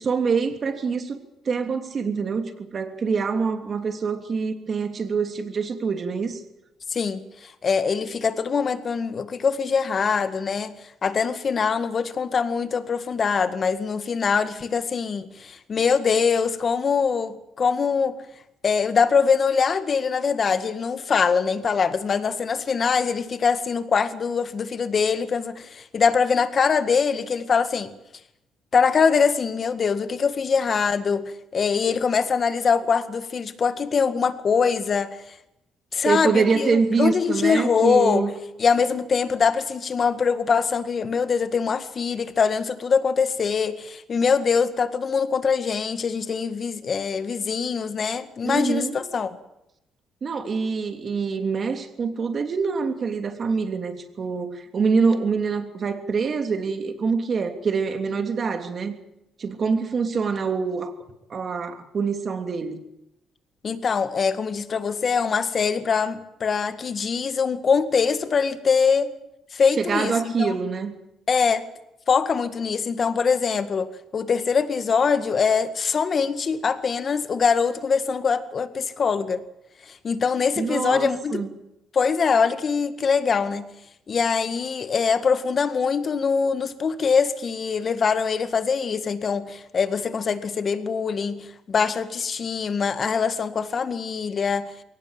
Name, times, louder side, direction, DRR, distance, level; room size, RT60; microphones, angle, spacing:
voice 1, 0.0-6.4 36.0-38.3 48.4-49.0 50.2-58.9 59.4-60.9 61.3-62.8 69.8-70.9 80.6-81.5, right 5 dB, 45° right, 7 dB, 3.0 m, -25 dB
voice 2, 6.9-10.7 11.0-18.2 18.6-27.9 28.7-35.4 35.9-38.3 38.6-49.3 63.6-69.1 69.5-70.6 71.3-71.6 72.1-79.4 79.8-81.4 81.9-83.7 84.1-94.7, left 5 dB, 45° left, 11 dB, 1.9 m, -23 dB
22.0 x 18.0 x 9.0 m, 0.84 s
cardioid pair, 90°, 0 cm